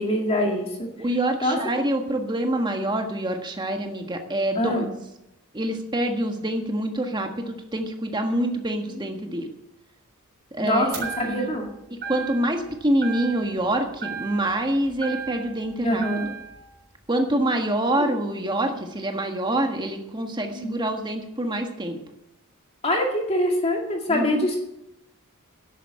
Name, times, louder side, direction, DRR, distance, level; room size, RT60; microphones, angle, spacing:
voice 1, 0.0-0.9 1.4-1.6 4.6-4.9 9.0-9.3 10.6-11.7 15.8-16.3 18.0-18.1 20.5-20.8 22.8-24.6, left 1 dB, 25° left, 1 dB, 2.1 m, -24 dB
voice 2, 1.0-4.9 5.5-9.5 10.5-11.5 12.1-16.0 17.1-22.0 24.1-24.5, right 1 dB, 20° right, 4 dB, 1.5 m, -26 dB
sound 1, 10.9-11.7 12.0-12.7 13.0-13.7 14.0-15.6 16.0-16.6, right 6 dB, 50° right, 4.0 m, -35 dB
11.0 x 8.5 x 8.6 m, 0.87 s
head